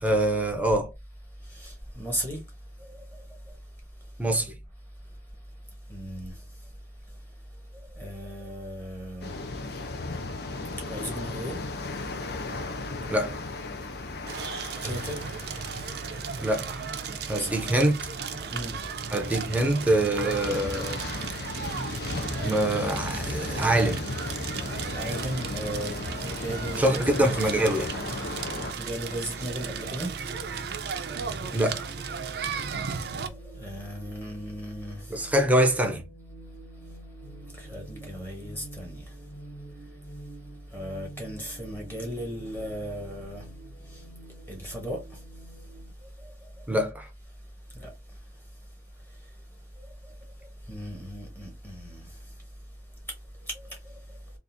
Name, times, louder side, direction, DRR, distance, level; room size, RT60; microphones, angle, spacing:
voice 1, 0.0-0.9 4.2-4.6 13.1-13.4 16.4-16.8 17.3-18.0 19.1-21.0 22.4-24.0 26.8-27.9 31.5-31.8 35.1-36.0 46.7-47.1, right 1 dB, 10° right, 0.6 m, -24 dB
voice 2, 1.5-2.4 5.9-6.3 8.0-9.3 10.9-11.6 12.7-12.8 14.8-15.2 17.4-17.8 18.5-18.8 21.6-21.7 24.8-25.9 26.2-27.2 27.5-27.7 28.8-30.1 33.3-35.0 37.6-39.0 40.7-43.4 44.5-45.0 46.2-46.3 47.7-47.9 50.7-52.1 53.5-53.7, equal, 10° left, 1.1 m, -36 dB
sound 1, 9.2-28.7, left 3 dB, 60° left, 0.6 m, -36 dB
Crackle, 14.3-33.3, right 6 dB, 60° right, 0.4 m, -36 dB
sound 2, 26.7-45.9, right 1 dB, 45° left, 1.5 m, -48 dB
3.7 x 2.5 x 2.6 m
head